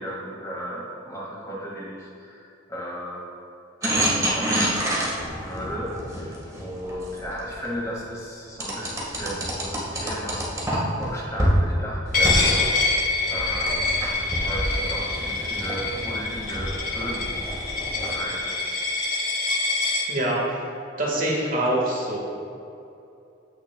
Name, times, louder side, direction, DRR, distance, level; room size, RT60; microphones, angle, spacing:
voice 1, 0.0-3.3 3.8-4.9 5.2-12.8 13.3-14.0 14.4-17.4 18.0-18.7, equal, 15° left, -4 dB, 1.7 m, -35 dB
sound 1, 3.8-7.7 8.6-11.1 11.4-11.6 12.0-18.2, equal, 15° right, 1.5 m, -28 dB
Coin (dropping), 12.1-20.0, left 3 dB, 45° left, 1.5 m, -26 dB
voice 2, 20.1-20.6 21.0-22.2, right 1 dB, 45° right, -4 dB, 1.6 m, -24 dB
15.5 x 5.9 x 2.2 m, 2.7 s
head